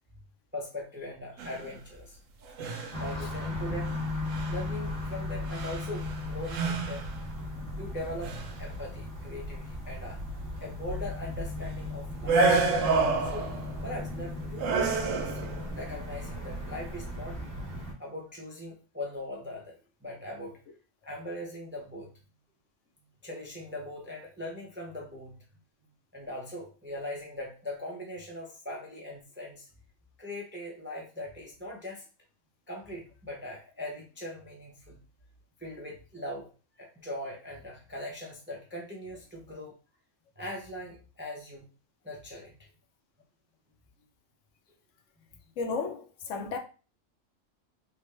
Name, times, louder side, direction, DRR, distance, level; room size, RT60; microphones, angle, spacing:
voice 1, 0.5-2.2 2.9-3.9 4.5-7.1 7.8-10.2 10.6-12.4 13.2-13.5 13.8-17.4 18.0-20.6 21.0-22.1 23.2-25.4 26.1-29.7 30.2-32.0 32.7-35.0 35.6-36.5 36.8-39.7 40.4-41.6 42.0-42.5, left 1 dB, 15° right, 0.4 m, -40 dB
sound 1, 1.4-1.7 2.5-3.2 3.9-4.0 4.3-4.6 5.5-6.2 6.5-7.2 8.1-8.6 12.2-13.8 14.6-15.6, right 3 dB, 80° right, 1.0 m, -28 dB
sound 2, 2.9-17.9, left 2 dB, 40° right, 1.2 m, -36 dB
voice 2, 45.6-46.6, left 4 dB, 75° left, 0.9 m, -33 dB
3.6 x 2.1 x 3.2 m
omnidirectional pair, 1.3 m